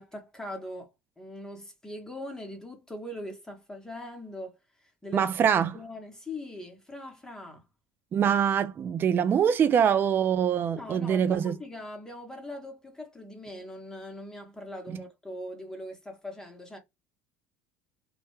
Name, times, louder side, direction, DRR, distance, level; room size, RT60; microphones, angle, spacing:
voice 1, 0.0-5.3 5.7-7.6 10.8-16.8, left 1 dB, 10° left, 0.8 m, -41 dB
voice 2, 5.1-5.8 8.1-11.6 14.9-15.0, right 8 dB, 40° right, 0.4 m, -24 dB
2.2 x 2.1 x 2.9 m
supercardioid pair, 85°, 6 cm